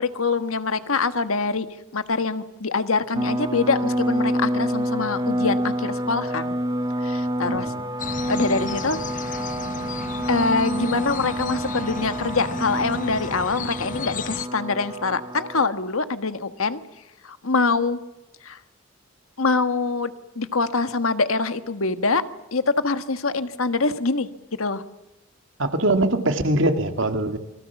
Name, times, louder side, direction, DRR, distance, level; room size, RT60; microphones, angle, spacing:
voice 1, 0.0-1.7 1.9-6.5 7.0-7.7 8.3-9.0 9.2-9.4 10.3-16.8 17.2-18.0 18.4-18.6 19.4-22.2 22.5-24.3 24.6-24.8, left 4 dB, 80° left, 10 dB, 1.4 m, -24 dB
sound 1, 3.1-15.7, right 1 dB, 20° right, 0.9 m, -28 dB
voice 2, 7.4-7.8 25.6-27.4, right 1 dB, 65° right, 7 dB, 2.2 m, -22 dB
sound 2, 8.0-14.4, left 5 dB, 35° left, 0.9 m, -34 dB
28.0 x 23.0 x 7.2 m, 1.0 s
head